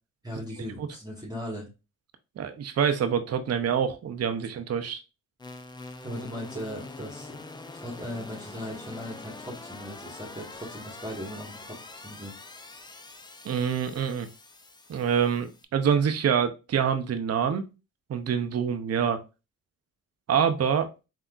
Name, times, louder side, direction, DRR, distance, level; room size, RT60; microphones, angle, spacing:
voice 1, 0.2-1.7 6.0-7.4 7.7-12.4, equal, 10° right, -4 dB, 1.5 m, -38 dB
voice 2, 2.4-5.0 13.4-14.3 14.9-17.7 18.1-19.2 20.3-20.9, right 7 dB, 40° right, 8 dB, 0.6 m, -26 dB
sound 1, 5.4-15.7, left 3 dB, 10° left, 0.4 m, -44 dB
3.5 x 2.8 x 2.4 m, 0.29 s
supercardioid pair, 45°, 39 cm